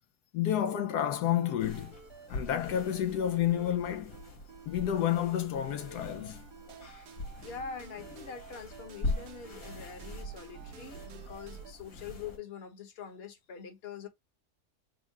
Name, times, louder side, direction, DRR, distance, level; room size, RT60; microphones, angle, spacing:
voice 1, 0.3-1.9 2.3-4.2 4.7-6.4, left 10 dB, 80° left, 1.1 m, -30 dB
sound 1, 1.0-5.4 5.8-11.7, right 8 dB, 80° right, 1.2 m, -51 dB
sound 2, 1.6-12.4, left 2 dB, 60° left, 2.0 m, -42 dB
voice 2, 7.4-14.1, left 6 dB, 45° left, 1.2 m, -44 dB
4.6 x 2.1 x 4.5 m
omnidirectional pair, 1.7 m